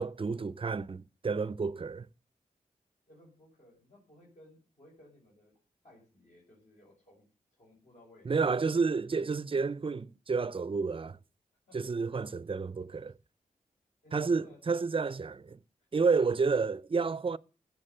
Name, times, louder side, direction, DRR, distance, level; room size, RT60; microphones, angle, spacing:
voice 1, 0.0-2.1 8.3-11.2 11.7-13.1 14.1-15.6 15.9-17.4, right 4 dB, 40° right, 0.6 m, -30 dB
voice 2, 3.1-5.6 5.8-8.3 11.7-12.1 13.0-13.1 14.0-14.7 15.9-16.0, left 1 dB, 60° left, 5.9 m, -59 dB
15.5 x 7.4 x 6.7 m
cardioid pair, 55°, 14 cm